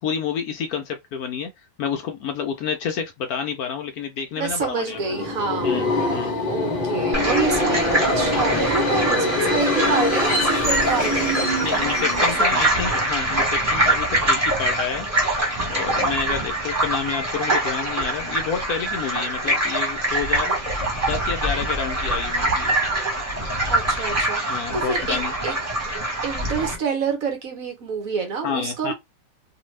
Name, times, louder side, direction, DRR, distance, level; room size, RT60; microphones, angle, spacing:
voice 1, 0.0-1.5 1.8-5.0 5.6-6.4 11.6-15.1 15.7-20.5 21.1-22.7 24.5-25.3 28.4-28.9, left 6 dB, 70° left, 0.9 m, -29 dB
voice 2, 4.4-5.7 6.4-11.4 12.2-12.8 23.7-25.2 25.4-25.5 26.2-28.9, right 5 dB, 60° right, 1.2 m, -27 dB
Subway metro underground, 4.9-12.6, left 2 dB, 35° left, 0.7 m, -24 dB
sound 1, 7.1-26.7, right 1 dB, 25° right, 1.3 m, -24 dB
2.8 x 2.6 x 3.1 m
omnidirectional pair, 1.9 m